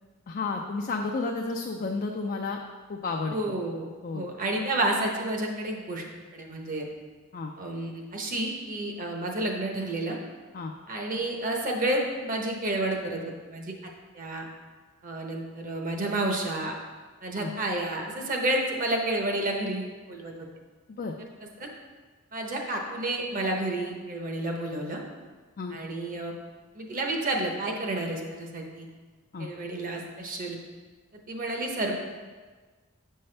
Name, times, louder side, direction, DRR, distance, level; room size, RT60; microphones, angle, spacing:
voice 1, 0.3-2.6 2.9-3.6 4.0-4.3 7.3-7.5 10.5-10.7 17.4-17.5 20.9-21.1 25.6-25.8 29.3-29.5, left 3 dB, 40° left, 2 dB, 0.4 m, -32 dB
voice 2, 3.3-3.9 4.1-6.0 6.3-6.9 7.6-10.2 10.9-13.7 14.1-14.5 15.0-16.8 17.2-20.3 21.6-21.7 22.3-25.0 25.7-26.3 26.8-28.9 29.4-30.6 31.3-32.0, right 1 dB, 40° right, 1 dB, 0.9 m, -30 dB
7.5 x 5.6 x 3.3 m, 1.4 s
head